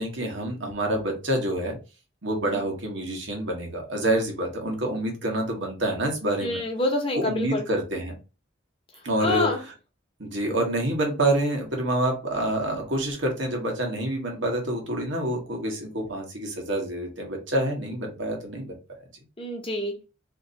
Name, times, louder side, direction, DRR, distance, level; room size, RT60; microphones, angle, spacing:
voice 1, 0.0-1.8 2.2-6.6 7.2-8.1 9.0-9.5 10.2-18.8, right 1 dB, 75° right, 1 dB, 1.2 m, -27 dB
voice 2, 6.4-7.7 8.9-9.6 19.4-20.0, left 2 dB, 30° left, 2 dB, 0.9 m, -27 dB
2.8 x 2.6 x 3.9 m, 0.31 s
head